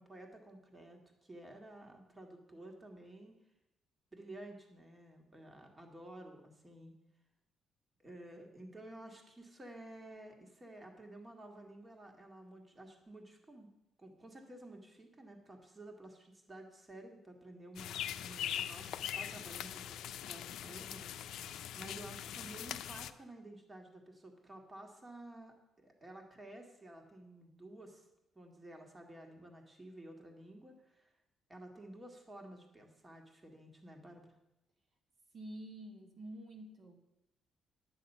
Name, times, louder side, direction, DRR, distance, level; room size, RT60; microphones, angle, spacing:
voice 1, 0.0-3.4 4.1-7.0 8.0-13.7 14.0-28.1 28.4-31.1 31.5-34.3, right 1 dB, 20° right, 3 dB, 1.9 m, -52 dB
sound 1, 17.8-23.1, left 10 dB, 80° left, 0.5 m, -42 dB
voice 2, 35.3-36.9, right 1 dB, 55° right, 1 dB, 1.7 m, -48 dB
10.0 x 8.7 x 5.5 m, 0.89 s
cardioid pair, 90°, 0 cm